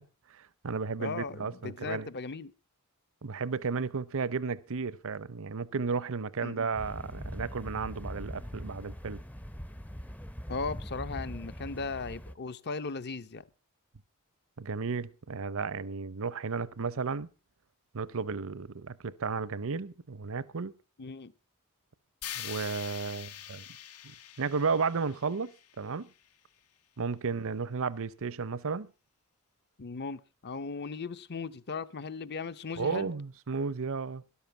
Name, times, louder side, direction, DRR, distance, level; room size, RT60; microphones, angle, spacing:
voice 1, 0.3-2.1 3.2-9.2 14.6-17.3 17.9-20.7 22.4-23.6 24.4-26.1 27.0-28.9 32.8-34.2, right 5 dB, 65° right, 0.7 m, -33 dB
voice 2, 1.0-2.5 6.4-6.6 10.5-13.4 21.0-21.3 29.8-33.1, left 4 dB, 50° left, 0.8 m, -37 dB
sound 1, 6.7-12.4, equal, 5° left, 0.6 m, -41 dB
sound 2, 22.2-26.3, left 11 dB, 75° left, 1.2 m, -44 dB
13.0 x 11.5 x 5.7 m
head